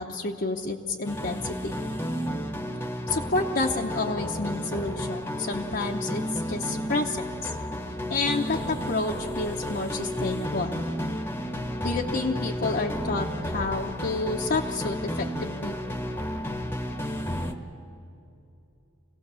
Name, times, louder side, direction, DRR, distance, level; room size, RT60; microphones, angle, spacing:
voice 1, 0.0-1.7 3.1-6.2 6.5-7.5 8.1-10.8 11.8-15.7, left 3 dB, 55° left, 0 dB, 0.9 m, -29 dB
sound 1, 1.0-17.5, equal, 10° left, 1.1 m, -32 dB
25.5 x 17.0 x 6.9 m, 2.7 s
head